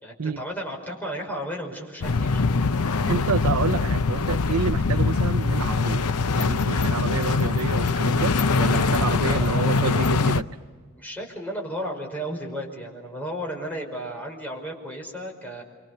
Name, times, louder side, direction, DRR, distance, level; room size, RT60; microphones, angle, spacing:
voice 1, 0.0-2.4 9.2-9.8 11.0-15.6, equal, 10° left, 0 dB, 5.4 m, -34 dB
sound 1, 2.0-10.4, left 4 dB, 85° left, 0.7 m, -23 dB
voice 2, 3.1-6.1 6.4-10.5, right 5 dB, 75° right, 13 dB, 0.6 m, -29 dB
29.0 x 25.0 x 6.8 m, 1.5 s
head